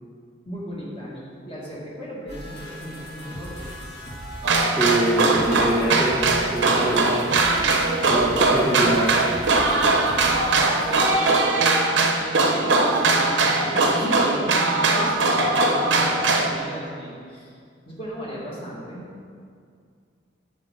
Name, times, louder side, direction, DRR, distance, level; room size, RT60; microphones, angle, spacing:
voice 1, 0.5-3.7 9.6-11.9 12.2-17.6 17.9-19.1, equal, 30° left, -6 dB, 2.0 m, -35 dB
sound 1, 2.3-11.1, equal, 60° left, 1.8 m, -38 dB
sound 2, 4.4-16.5, right 3 dB, 85° right, 0.8 m, -20 dB
voice 2, 4.7-7.2 8.1-9.1, right 1 dB, 5° left, -9 dB, 1.1 m, -24 dB
9.5 x 7.3 x 3.8 m, 2.2 s
head